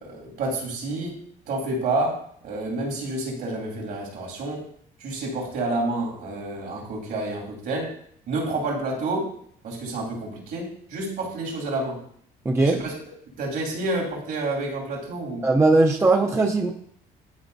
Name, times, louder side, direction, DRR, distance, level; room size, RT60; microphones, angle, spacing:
voice 1, 0.0-1.2 1.5-4.6 5.0-7.9 8.3-9.3 9.6-12.0 12.6-12.9 13.4-15.5, right 2 dB, 70° right, -2 dB, 2.9 m, -29 dB
voice 2, 12.4-12.8 15.4-16.7, right 2 dB, 15° right, 1 dB, 0.7 m, -19 dB
11.5 x 4.2 x 2.7 m, 0.65 s
cardioid pair, 110°, 17 cm